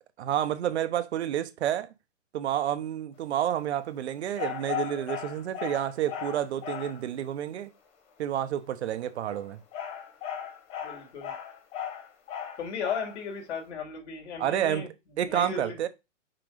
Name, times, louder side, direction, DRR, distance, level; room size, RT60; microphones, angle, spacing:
voice 1, 0.2-1.9 2.3-7.7 8.2-9.6 14.4-14.9 15.2-15.9, right 11 dB, 60° right, 1.0 m, -29 dB
sound 1, 4.3-7.0 9.1-13.2, left 9 dB, 30° left, 1.6 m, -37 dB
voice 2, 10.8-11.3 12.6-14.9 15.2-15.8, left 6 dB, 60° left, 3.0 m, -35 dB
6.0 x 3.9 x 4.9 m
hypercardioid pair, 155°, 37 cm